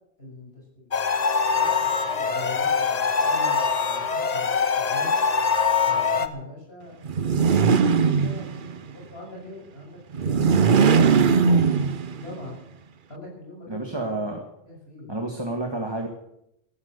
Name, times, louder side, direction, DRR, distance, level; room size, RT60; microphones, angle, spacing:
voice 1, 0.2-0.9 1.4-5.2 5.8-11.7 12.2-12.6 13.1-13.9 14.6-15.1, left 1 dB, 60° left, -3 dB, 7.0 m, -42 dB
sound 1, 0.9-6.3, left 5 dB, 40° left, 0.9 m, -23 dB
sound 2, 7.0-8.8 10.1-12.3, right 5 dB, 50° right, 0.8 m, -20 dB
voice 2, 13.7-14.4 15.1-16.1, right 2 dB, 20° right, 2 dB, 1.9 m, -29 dB
14.0 x 12.5 x 8.2 m, 0.79 s
omnidirectional pair, 1.2 m